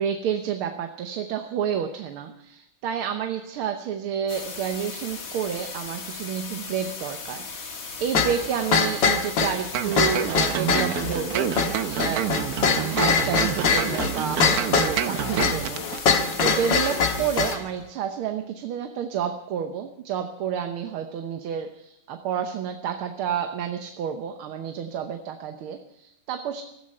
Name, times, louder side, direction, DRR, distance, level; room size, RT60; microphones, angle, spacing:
voice 1, 0.0-11.5 11.9-12.3 12.7-26.6, right 8 dB, 85° right, 6 dB, 1.8 m, -30 dB
sound 1, 4.3-17.6, left 4 dB, 45° left, 2.0 m, -37 dB
sound 2, 8.1-17.6, left 5 dB, 65° left, 2.0 m, -23 dB
sound 3, 9.7-16.0 16.3-16.4, right 9 dB, 60° right, 1.0 m, -28 dB
16.5 x 14.5 x 5.5 m, 0.82 s
omnidirectional pair, 2.3 m